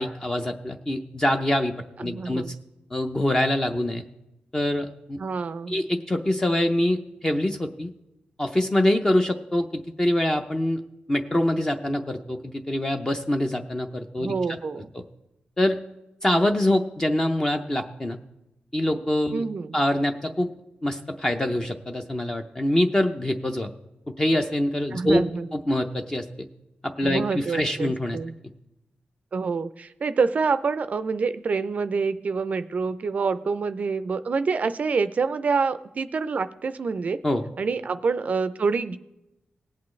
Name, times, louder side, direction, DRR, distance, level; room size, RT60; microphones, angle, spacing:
voice 1, 0.0-1.7 2.0-2.4 2.9-4.0 4.5-5.2 5.7-7.9 8.4-10.8 11.1-14.6 14.9-15.0 15.6-15.8 16.2-18.2 18.7-19.4 19.7-20.5 20.8-23.7 24.1-25.2 25.5-26.3 26.8-28.2 37.2-37.4, left 1 dB, 20° left, 4 dB, 0.6 m, -24 dB
voice 2, 2.0-2.6 5.2-5.8 14.2-14.9 19.3-19.8 24.9-25.5 27.0-28.3 29.3-37.2 37.6-39.0, right 4 dB, 45° right, 12 dB, 0.4 m, -27 dB
18.5 x 8.4 x 3.2 m, 0.91 s
wide cardioid pair, 155°, 3 cm